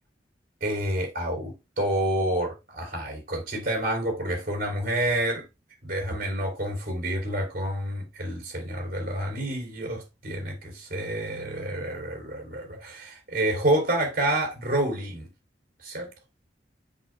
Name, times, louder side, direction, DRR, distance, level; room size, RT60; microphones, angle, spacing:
voice 1, 0.6-5.4 5.8-15.3 15.8-16.1, right 1 dB, 50° right, 3.3 m, -28 dB
7.5 x 6.0 x 2.2 m
head